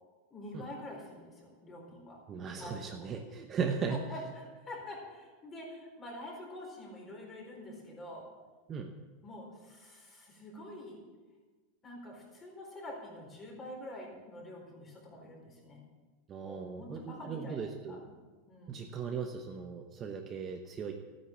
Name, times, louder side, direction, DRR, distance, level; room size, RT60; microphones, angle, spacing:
voice 1, 0.3-2.2 2.6-3.1 3.9-8.3 9.2-11.0 11.8-15.8 16.4-18.2 18.5-18.9, left 1 dB, 20° left, -1 dB, 4.2 m, -46 dB
voice 2, 2.3-4.0 8.7-8.9 16.3-18.1 18.7-20.9, right 6 dB, 25° right, 3 dB, 0.9 m, -37 dB
13.5 x 9.6 x 7.2 m, 1.3 s
supercardioid pair, 160°, 0 cm